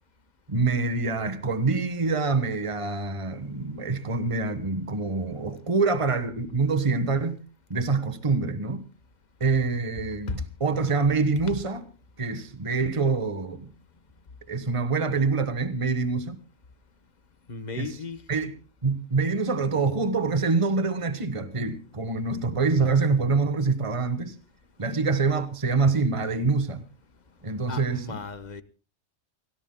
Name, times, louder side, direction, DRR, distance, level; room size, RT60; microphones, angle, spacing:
voice 1, 0.5-7.4 7.7-8.8 9.4-11.9 12.2-13.7 14.5-16.4 17.7-18.0 18.3-24.4 24.8-26.8 27.4-28.2, right 4 dB, 30° right, 1.3 m, -25 dB
voice 2, 17.5-18.2 27.7-28.6, left 5 dB, 40° left, 1.3 m, -36 dB
28.5 x 17.5 x 2.2 m
omnidirectional pair, 1.2 m